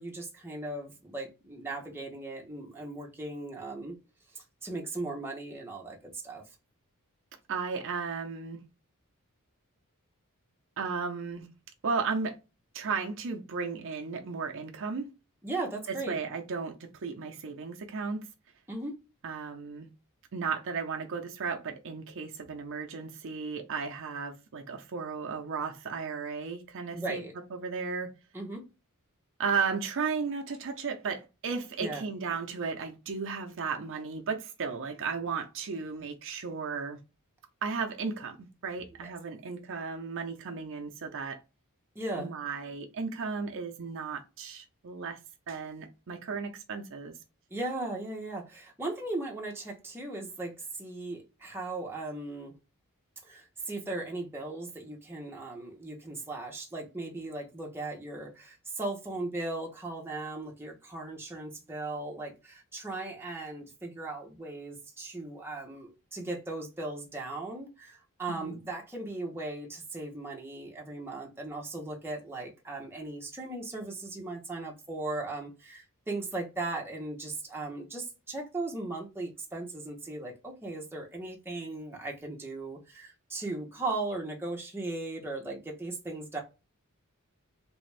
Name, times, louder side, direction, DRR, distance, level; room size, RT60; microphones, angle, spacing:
voice 1, 0.0-3.9 4.3-6.4 15.4-16.2 18.7-19.0 26.9-27.3 28.3-28.6 31.8-32.1 39.0-39.1 41.9-42.3 47.5-52.5 53.2-86.4, right 2 dB, 10° right, 0.9 m, -37 dB
voice 2, 7.5-8.6 10.8-11.5 11.8-12.4 12.7-15.1 16.1-18.3 19.2-19.9 20.3-28.1 29.4-37.0 37.6-41.4 42.2-45.2 45.5-47.1 68.3-68.6, right 5 dB, 60° right, 0.6 m, -35 dB
3.4 x 2.5 x 3.2 m
head